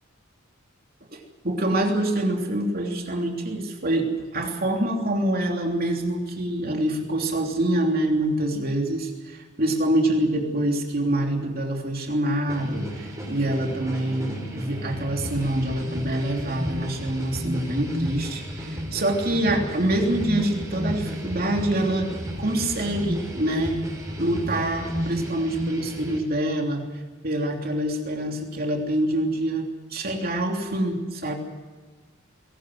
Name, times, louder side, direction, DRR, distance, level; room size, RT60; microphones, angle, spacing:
voice 1, 1.1-22.1 22.4-23.8 24.2-26.9 27.2-31.3, right 1 dB, 45° right, 2 dB, 3.1 m, -25 dB
sound 1, 12.5-26.2, equal, 15° right, 5.2 m, -32 dB
22.0 x 18.5 x 7.8 m, 1.3 s
head